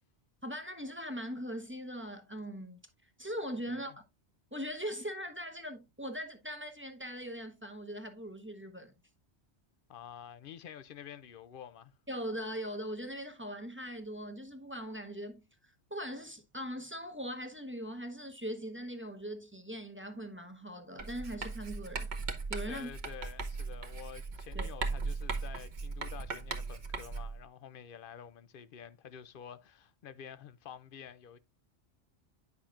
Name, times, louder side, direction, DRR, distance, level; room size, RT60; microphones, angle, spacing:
voice 1, 0.4-3.9 4.5-8.9 12.1-22.1 22.5-22.9 24.5-24.7, equal, 10° right, 0.8 m, -40 dB
voice 2, 9.9-11.9 22.7-31.4, left 9 dB, 60° left, 0.7 m, -49 dB
Writing, 21.0-27.4, right 4 dB, 45° right, 1.0 m, -38 dB
9.7 x 5.7 x 2.4 m
omnidirectional pair, 1.1 m